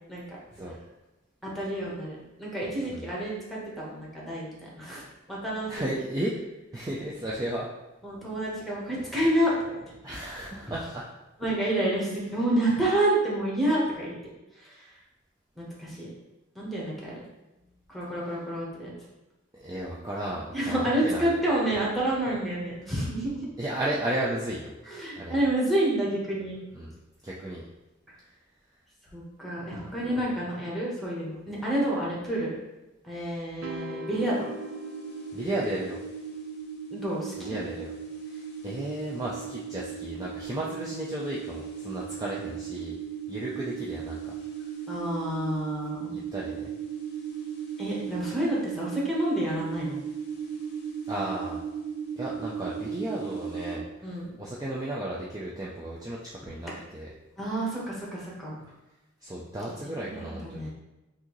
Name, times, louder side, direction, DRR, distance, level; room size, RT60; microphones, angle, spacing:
voice 1, 1.4-5.0 5.3-5.9 6.8-6.9 8.0-9.9 10.6-10.7 11.4-14.1 14.6-14.8 15.6-16.1 16.5-17.2 17.9-18.9 20.5-23.5 24.9-26.6 29.1-32.5 33.0-34.4 36.9-37.6 44.9-46.2 47.8-50.0 54.0-54.3 57.4-58.6 59.7-60.7, right 1 dB, ahead, -5 dB, 1.2 m, -29 dB
voice 2, 5.7-6.3 6.7-7.7 10.0-11.1 19.5-21.4 23.6-24.7 25.2-25.5 26.7-26.9 27.2-27.6 35.3-36.0 37.5-37.9 38.3-42.9 43.3-44.3 46.1-46.7 51.1-51.6 52.2-56.2 56.4-57.1 59.2-60.7, right 1 dB, 20° right, -5 dB, 0.5 m, -34 dB
sound 1, 33.6-36.0, equal, 65° right, 0.5 m, -41 dB
sound 2, 34.2-53.8, right 7 dB, 55° left, 0.7 m, -37 dB
5.9 x 2.7 x 3.1 m, 1.0 s
head